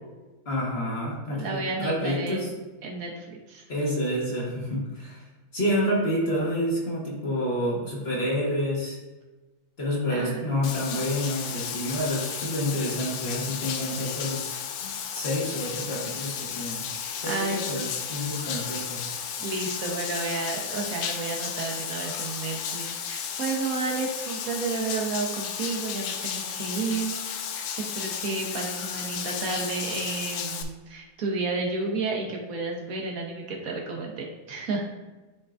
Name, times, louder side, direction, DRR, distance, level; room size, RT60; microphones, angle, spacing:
voice 1, 0.4-2.5 3.7-5.2 5.5-9.0 9.8-16.9 17.2-19.0, equal, 35° left, -5 dB, 1.4 m, -29 dB
voice 2, 1.3-2.6 2.8-3.6 10.1-10.4 17.2-17.8 19.4-27.3 27.8-34.9, right 3 dB, 55° right, 0 dB, 1.2 m, -31 dB
Bathtub (filling or washing), 10.6-30.6, left 7 dB, 80° left, 1.3 m, -33 dB
10.0 x 3.7 x 2.5 m, 1.2 s
omnidirectional pair, 2.1 m